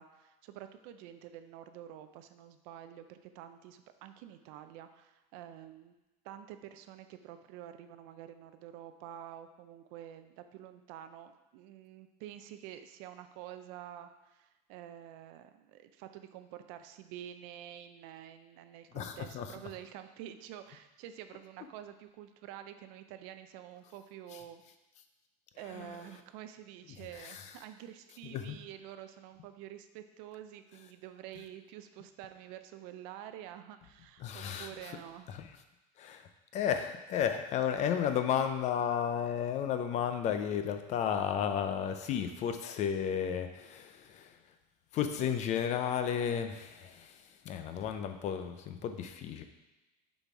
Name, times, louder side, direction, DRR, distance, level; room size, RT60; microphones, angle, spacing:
voice 1, 0.0-5.9 6.2-24.6 25.6-35.3, right 11 dB, 60° right, 9 dB, 0.5 m, -48 dB
voice 2, 18.9-19.5 25.7-25.9 27.1-27.5 28.3-28.6 34.2-34.9 35.3-35.4 36.0-44.3 44.9-49.4, left 8 dB, 35° left, 8 dB, 0.5 m, -33 dB
6.8 x 4.2 x 4.7 m, 1.0 s
supercardioid pair, 150°, 21 cm